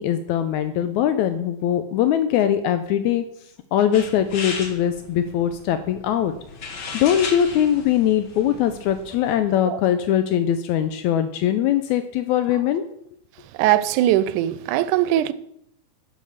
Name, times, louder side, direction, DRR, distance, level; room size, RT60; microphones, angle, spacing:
voice 1, 0.0-3.3 3.7-6.3 6.9-12.8, left 10 dB, 80° left, 1.9 m, -21 dB
sound 1, 3.9-9.4, left 4 dB, 50° left, 1.9 m, -36 dB
voice 2, 13.5-15.3, right 13 dB, 90° right, 2.1 m, -20 dB
8.7 x 6.5 x 6.4 m
omnidirectional pair, 3.4 m